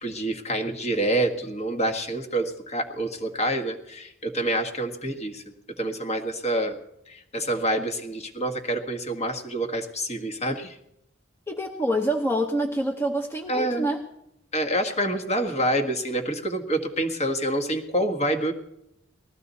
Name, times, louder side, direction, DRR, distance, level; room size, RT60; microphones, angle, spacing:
voice 1, 0.0-5.4 5.8-6.8 7.1-10.7 13.5-13.9 14.5-18.5, right 1 dB, 35° left, 3 dB, 1.6 m, -27 dB
voice 2, 11.5-14.0, equal, 15° left, 2 dB, 0.9 m, -26 dB
19.5 x 14.5 x 4.1 m, 0.82 s
head